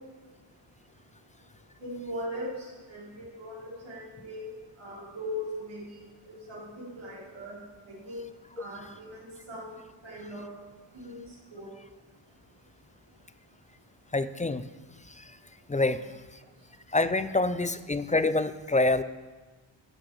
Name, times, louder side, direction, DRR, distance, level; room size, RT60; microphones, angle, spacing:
voice 1, 1.8-4.5 4.8-6.0 6.3-7.6 7.9-8.2 8.6-9.7 10.0-10.4 10.9-11.2 11.5-11.7, equal, 75° right, -7 dB, 4.7 m, -39 dB
voice 2, 14.1-14.7 15.2-15.3 15.7-16.0 16.9-19.0, left 2 dB, 20° left, 14 dB, 0.3 m, -26 dB
13.0 x 6.3 x 8.0 m, 1.3 s
wide cardioid pair, 120°, 48 cm